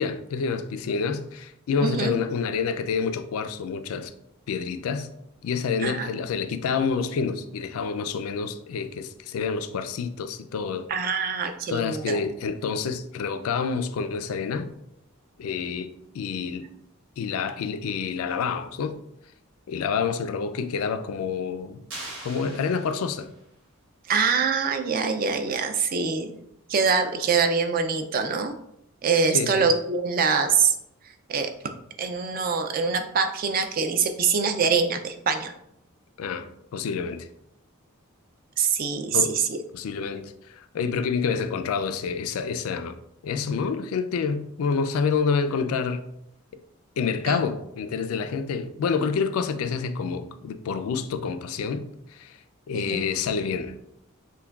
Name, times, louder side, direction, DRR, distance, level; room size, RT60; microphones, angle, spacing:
voice 1, 0.0-4.1 4.5-5.1 5.4-10.9 11.7-14.7 15.4-16.7 17.2-19.0 19.7-21.8 22.2-23.3 29.3-29.7 36.2-37.3 39.1-39.4 39.7-42.9 43.2-46.0 47.0-51.9 52.1-52.4 52.7-53.8, left 5 dB, 75° left, 0.3 m, -28 dB
voice 2, 1.8-2.1 5.8-6.1 10.9-12.2 24.1-26.3 26.7-28.5 29.0-30.7 31.3-31.5 32.0-35.5 38.6-39.6 47.3-47.4 52.7-53.0, right 5 dB, 40° right, 0.3 m, -24 dB
sound 1, 21.9-23.4, right 2 dB, 60° right, 1.4 m, -41 dB
5.7 x 2.2 x 2.3 m
head